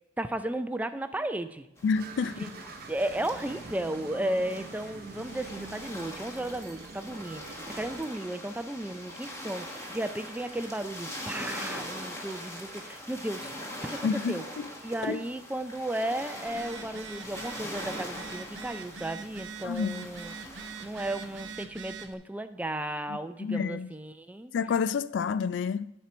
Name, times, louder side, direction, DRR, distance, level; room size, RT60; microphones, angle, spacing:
voice 1, 0.2-1.7 2.4-2.5 2.9-13.5 13.8-14.4 14.8-24.5, right 1 dB, 10° right, 0.4 m, -34 dB
voice 2, 1.8-2.6 14.0-14.7 15.0-15.2 19.6-20.1 23.1-23.9 24.5-25.9, left 5 dB, 70° left, 0.3 m, -29 dB
sound 1, 1.8-21.5, equal, 15° left, 1.3 m, -42 dB
sound 2, 2.0-8.1, right 3 dB, 55° right, 0.6 m, -46 dB
Telephone, 16.5-22.1, right 5 dB, 90° right, 0.8 m, -43 dB
10.5 x 4.4 x 6.0 m
head